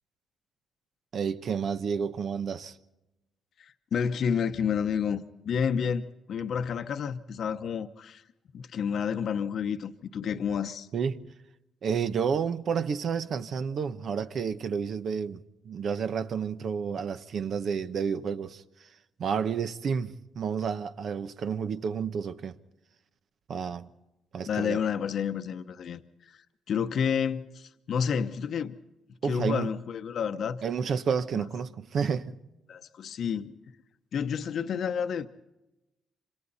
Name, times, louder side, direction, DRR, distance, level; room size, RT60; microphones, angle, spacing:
voice 1, 1.1-2.8 10.9-11.2 11.8-15.4 15.6-18.6 19.2-22.5 23.5-23.9 24.3-24.8 29.2-29.7 30.6-32.4, right 6 dB, 60° right, 1.1 m, -30 dB
voice 2, 3.6-8.2 8.5-10.9 24.5-26.0 26.7-28.7 29.2-30.6 31.3-31.5 32.7-33.5 34.1-35.3, left 7 dB, 60° left, 1.0 m, -30 dB
27.0 x 26.0 x 4.2 m
cardioid pair, 90°, 0 cm